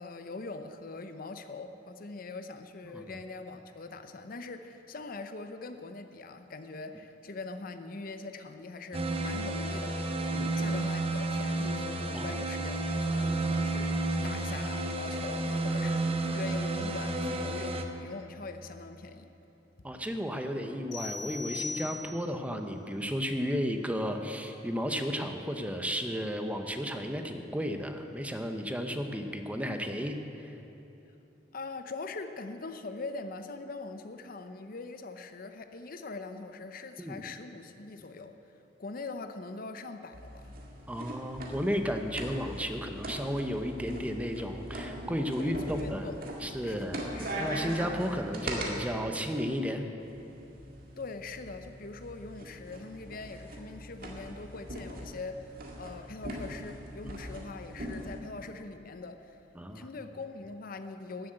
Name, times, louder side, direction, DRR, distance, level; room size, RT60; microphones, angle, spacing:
voice 1, 0.0-19.3 31.1-31.2 31.5-38.3 38.8-40.5 45.4-46.2 46.6-47.3 51.0-59.4 59.7-61.3, left 3 dB, 50° left, 9 dB, 0.6 m, -42 dB
sound 1, 8.9-17.8, right 2 dB, 30° right, 0.8 m, -31 dB
voice 2, 19.8-30.2 37.0-37.2 40.9-46.1 46.4-47.0 47.4-49.8 59.5-59.9, equal, 10° right, 6 dB, 0.7 m, -33 dB
sound 2, 20.9-22.4, left 3 dB, 75° left, 3.8 m, -39 dB
sound 3, 40.1-48.7 50.0-58.2, right 1 dB, 55° right, 1.9 m, -41 dB
13.0 x 7.7 x 8.8 m, 2.9 s
head